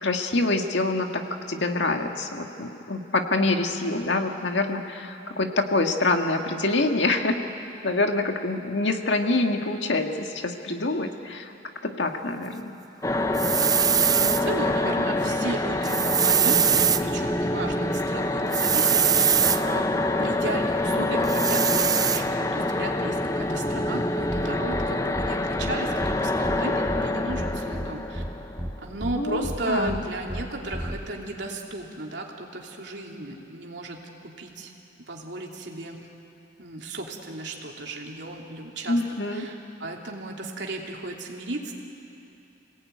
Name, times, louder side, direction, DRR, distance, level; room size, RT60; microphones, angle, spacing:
voice 1, 0.0-1.2 1.5-7.4 7.8-11.5 11.8-12.7 29.2-30.0 38.9-39.5, left 2 dB, 85° left, 4 dB, 1.8 m, -26 dB
sound 1, 13.0-29.0, left 2 dB, 20° left, 0.8 m, -26 dB
sound 2, 13.3-14.4 15.8-17.0 18.5-19.6 21.2-22.2, right 8 dB, 20° right, 0.5 m, -22 dB
voice 2, 14.0-19.9 20.2-28.2 28.8-34.7 35.1-36.1 36.6-39.0 39.3-41.7, right 2 dB, 75° right, 0 dB, 3.0 m, -34 dB
sound 3, 24.3-24.4 24.7-24.9 25.1-25.3 25.6-25.7 26.0-26.1 26.4-26.6 26.9-27.0 27.3-27.9 28.1-28.3 28.6-28.7 29.0-29.1 29.4-29.6 29.9-30.0 30.3-30.4 30.7-31.0, equal, 5° right, 3.8 m, -32 dB
27.0 x 18.5 x 9.4 m, 2.9 s
head